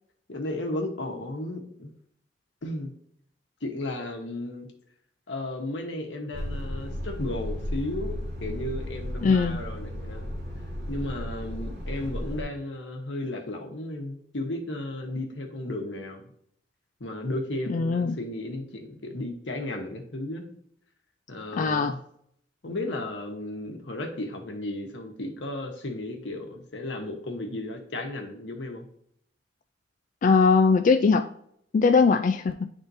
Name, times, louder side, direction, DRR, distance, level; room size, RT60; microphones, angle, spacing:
voice 1, 0.3-1.9 2.6-2.9 3.6-4.7 5.3-10.3 10.9-16.3 17.0-20.5 21.3-22.0 22.6-28.9, left 1 dB, 90° left, 3 dB, 1.1 m, -34 dB
Truck, 6.3-12.4, equal, 50° right, 2.7 m, -34 dB
voice 2, 9.2-9.6 17.7-18.2 21.5-21.9 30.2-31.3 31.7-32.7, left 4 dB, 45° left, 7 dB, 0.3 m, -21 dB
10.5 x 3.6 x 2.7 m, 0.68 s
head